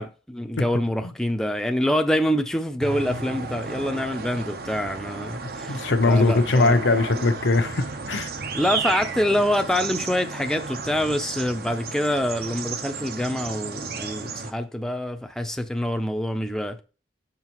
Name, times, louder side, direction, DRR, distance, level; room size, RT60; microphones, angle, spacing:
voice 1, 0.0-6.8 8.5-16.8, equal, 5° left, 0.5 m, -26 dB
sound 1, 2.8-14.5, right 4 dB, 60° right, 0.8 m, -33 dB
voice 2, 5.7-8.3, left 3 dB, 90° left, 0.7 m, -21 dB
5.9 x 5.6 x 3.0 m
head